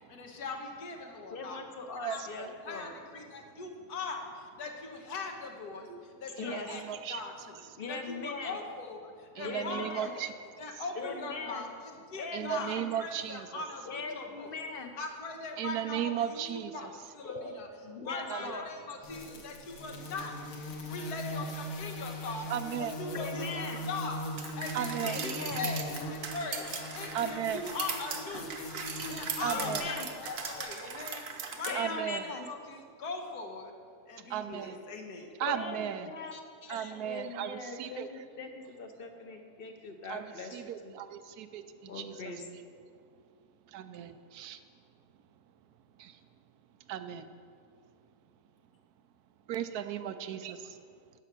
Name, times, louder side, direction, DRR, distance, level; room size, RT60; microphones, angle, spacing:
voice 1, 0.0-1.6 2.0-2.2 2.6-6.8 7.1-7.6 7.9-14.6 15.0-17.7 18.0-20.4 20.8-22.5 22.8-24.2 24.5-26.7 26.9-31.2 31.5-33.7 34.1-35.3, left 3 dB, 85° left, 3 dB, 1.7 m, -41 dB
voice 2, 1.3-2.9 6.4-6.7 7.8-8.6 9.4-10.1 11.0-11.7 12.2-12.9 13.8-14.9 17.3-18.7 23.1-23.8 25.0-25.7 29.5-30.1 31.6-32.5 35.5-40.9 41.9-42.5, left 4 dB, 45° left, 5 dB, 0.8 m, -40 dB
voice 3, 2.0-2.5 5.9-6.0 6.4-7.2 9.4-10.3 12.3-13.6 15.6-16.9 18.3-18.4 22.5-22.9 24.7-25.2 27.1-27.6 29.4-29.9 31.7-32.2 34.3-34.8 35.4-36.1 36.7-38.1 40.1-42.1 43.7-44.6 46.0-46.1 46.9-47.3 49.5-50.8, right 10 dB, 85° right, 10 dB, 1.1 m, -36 dB
sound 1, 19.0-31.8, left 1 dB, 60° left, 1.4 m, -41 dB
sound 2, 24.4-31.8, right 6 dB, 65° right, 1.2 m, -39 dB
11.0 x 7.0 x 6.0 m, 2.3 s
omnidirectional pair, 1.6 m